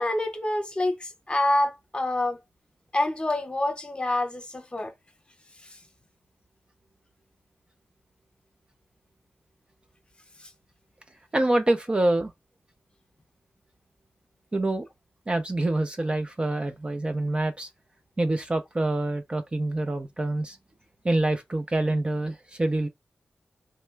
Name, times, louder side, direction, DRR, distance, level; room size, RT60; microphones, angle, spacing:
voice 1, 0.0-2.4 2.9-4.9 5.6-5.8 10.4-10.5, left 1 dB, 25° left, 0.9 m, -27 dB
voice 2, 11.3-12.3 14.5-14.9 15.3-17.7 18.2-20.6 21.0-22.9, right 2 dB, 25° right, 0.4 m, -26 dB
3.1 x 2.2 x 3.2 m
wide cardioid pair, 85°, 4 cm